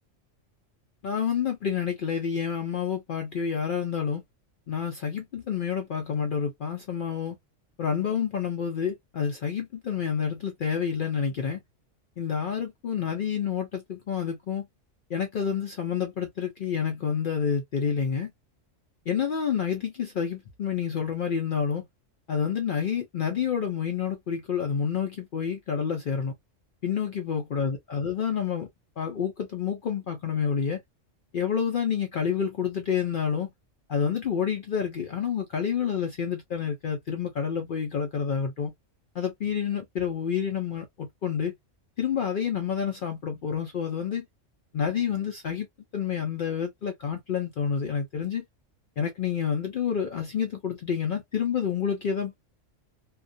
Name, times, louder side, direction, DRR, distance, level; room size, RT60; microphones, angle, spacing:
voice 1, 1.0-4.2 4.7-7.4 7.8-11.6 12.2-14.7 15.1-18.3 19.1-21.8 22.3-26.3 26.8-28.7 29.0-30.8 31.3-33.5 33.9-38.7 39.1-41.5 42.0-44.2 44.7-45.7 45.9-48.4 49.0-52.4, left 7 dB, 60° left, 0.5 m, -28 dB
2.3 x 2.1 x 2.5 m
omnidirectional pair, 1.3 m